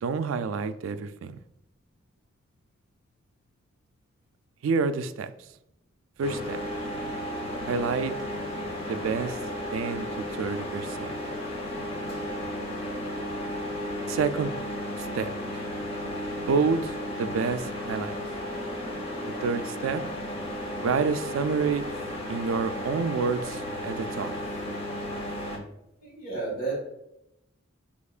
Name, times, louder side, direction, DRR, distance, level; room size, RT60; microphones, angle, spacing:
voice 1, 0.0-1.4 4.6-5.3 6.2-6.6 7.6-8.2 8.9-9.4 9.7-11.1 14.1-14.5 15.0-15.6 16.3-18.2 19.2-20.1 20.8-21.9 22.3-24.3, right 5 dB, 85° right, 0.3 m, -28 dB
sound 1, 6.2-25.6, left 1 dB, 30° left, 0.7 m, -34 dB
voice 2, 26.0-26.8, right 3 dB, 50° left, 1.6 m, -31 dB
6.4 x 2.9 x 2.4 m
head